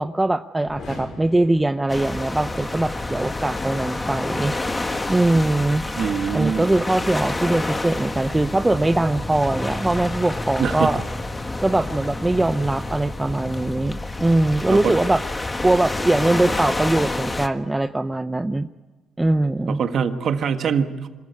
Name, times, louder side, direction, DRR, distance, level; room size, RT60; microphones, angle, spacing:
voice 1, 0.0-4.5 4.8-5.9 6.3-11.0 11.6-15.2 15.6-18.7 19.2-19.8, right 2 dB, 15° right, 10 dB, 0.6 m, -21 dB
sound 1, 0.6-2.6, left 2 dB, 65° left, 6.3 m, -41 dB
sound 2, 1.9-17.5, left 2 dB, 20° left, 1.5 m, -28 dB
voice 2, 6.0-6.7 10.6-10.9 14.7-14.9 19.7-21.1, right 7 dB, 60° right, 8 dB, 1.5 m, -23 dB
25.5 x 15.0 x 9.6 m, 1.3 s
cardioid pair, 90°, 0 cm